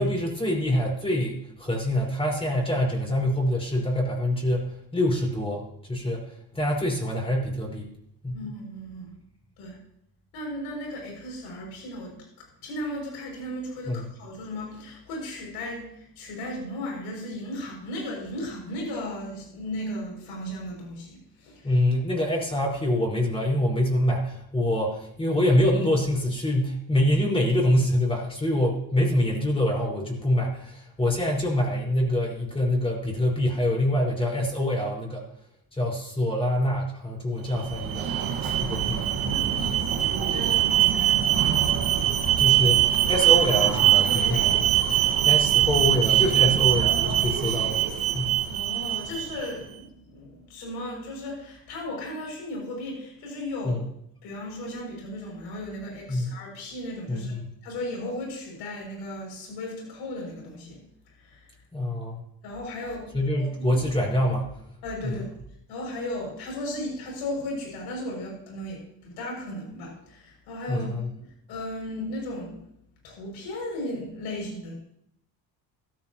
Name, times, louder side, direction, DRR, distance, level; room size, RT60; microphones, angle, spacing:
voice 1, 0.0-4.7 4.9-6.2 6.5-7.9 8.2-8.4 13.9-14.1 21.6-35.2 35.7-38.1 38.6-39.4 42.4-47.8 48.1-48.3 53.6-53.8 56.1-56.3 57.1-57.4 61.7-62.2 63.1-64.5 65.0-65.2 70.7-71.1, left 1 dB, 15° left, -1 dB, 5.1 m, -25 dB
voice 2, 8.3-9.1 9.6-9.8 10.3-21.7 39.2-41.5 48.5-53.8 54.2-57.4 57.6-60.8 61.1-61.5 62.4-63.8 64.8-65.2 65.7-72.6 73.0-74.7, left 1 dB, 90° left, -1 dB, 6.8 m, -36 dB
Alarm, 37.5-49.5, right 11 dB, 60° right, 1.8 m, -22 dB
16.0 x 14.0 x 3.0 m, 0.73 s
cardioid pair, 110°, 38 cm